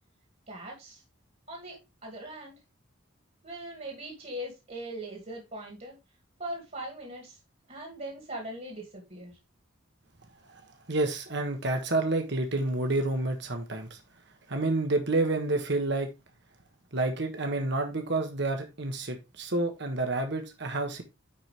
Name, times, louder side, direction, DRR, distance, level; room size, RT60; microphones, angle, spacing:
voice 1, 0.5-1.0 1.5-2.6 3.4-6.0 6.4-7.4 7.7-9.4, right 1 dB, 40° right, 2.4 m, -40 dB
voice 2, 10.9-14.0 14.5-16.1 16.9-21.0, right 2 dB, 55° right, 1.3 m, -29 dB
10.5 x 4.7 x 3.4 m
head